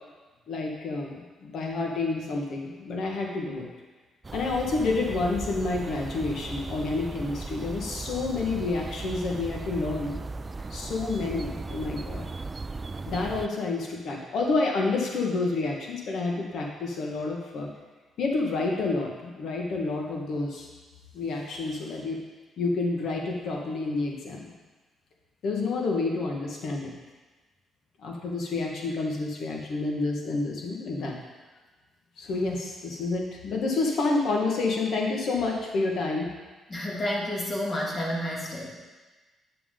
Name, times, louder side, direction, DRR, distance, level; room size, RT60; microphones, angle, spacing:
voice 1, 0.5-1.1 1.4-3.7 4.3-10.2 10.7-12.3 13.1-17.7 18.2-20.7 21.1-22.2 22.6-24.5 25.4-26.9 28.0-31.2 32.2-36.3, left 3 dB, 65° left, 0 dB, 1.5 m, -29 dB
sound 1, 4.2-13.5, right 3 dB, 25° right, 0.3 m, -37 dB
voice 2, 36.7-38.7, left 1 dB, 35° left, -3 dB, 2.2 m, -30 dB
9.4 x 7.1 x 3.8 m, 1.3 s
cardioid pair, 90°, 0 cm